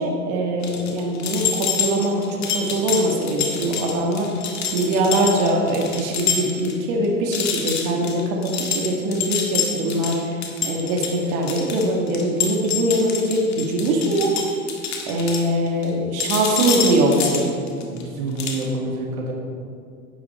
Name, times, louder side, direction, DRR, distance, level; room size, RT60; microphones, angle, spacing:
voice 1, 0.0-14.3 15.1-17.5, right 1 dB, 60° right, 0 dB, 1.9 m, -22 dB
sound 1, 0.6-6.7 7.0-7.1 7.3-15.9 16.2-18.0 18.4-18.6, left 6 dB, 40° left, 1.8 m, -27 dB
voice 2, 17.8-19.3, right 2 dB, 80° right, -1 dB, 1.9 m, -28 dB
11.0 x 8.6 x 4.3 m, 2.3 s
hypercardioid pair, 95°, 43 cm